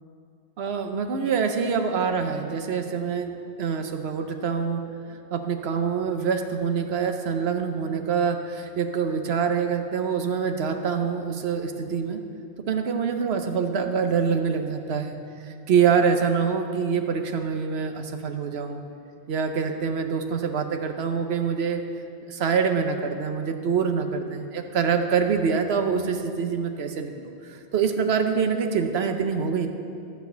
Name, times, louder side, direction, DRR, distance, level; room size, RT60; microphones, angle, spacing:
voice 1, 0.6-3.3 3.6-4.8 5.1-12.2 12.7-15.2 15.7-18.8 19.3-21.8 22.3-29.7, right 6 dB, 70° right, 6 dB, 1.1 m, -25 dB
13.5 x 4.7 x 8.0 m, 2.6 s
omnidirectional pair, 1.1 m